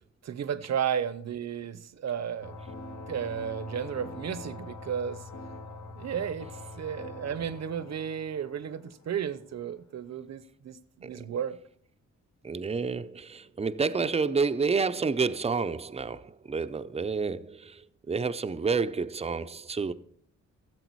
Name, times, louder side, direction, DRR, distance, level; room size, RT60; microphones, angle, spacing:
voice 1, 0.2-2.6 3.1-5.2 5.9-6.5 6.8-11.6, right 8 dB, 60° right, 0.8 m, -33 dB
sound 1, 2.4-9.6, left 2 dB, 70° left, 1.8 m, -44 dB
voice 2, 12.4-19.9, right 4 dB, 20° right, 0.6 m, -29 dB
15.0 x 7.6 x 4.6 m
cardioid pair, 85°, 30 cm